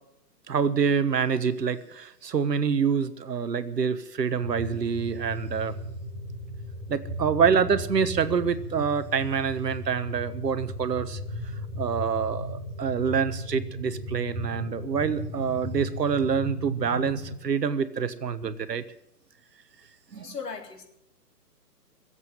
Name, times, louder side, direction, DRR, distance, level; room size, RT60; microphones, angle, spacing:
voice 1, 0.5-5.7 6.9-11.2 11.8-18.8 20.1-20.3, right 6 dB, 75° right, 13 dB, 1.3 m, -26 dB
sound 1, 4.4-17.4, equal, 10° left, 2.7 m, -36 dB
voice 2, 20.1-20.8, left 5 dB, 70° left, 3 dB, 3.6 m, -37 dB
21.0 x 8.2 x 7.8 m, 0.79 s
hypercardioid pair, 145°, 49 cm